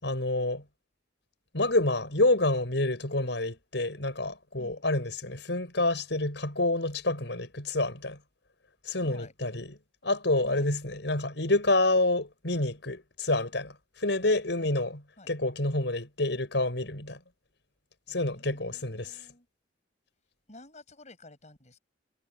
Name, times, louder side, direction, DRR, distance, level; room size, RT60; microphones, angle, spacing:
voice 1, 0.0-0.6 1.5-8.2 8.8-9.7 10.0-15.0 15.3-17.2 18.1-19.2, left 2 dB, 75° left, 5.9 m, -28 dB
voice 2, 9.0-9.3 10.4-10.7 14.6-14.7 15.2-15.3 18.1-19.5 20.5-21.8, left 2 dB, 40° left, 6.9 m, -52 dB
head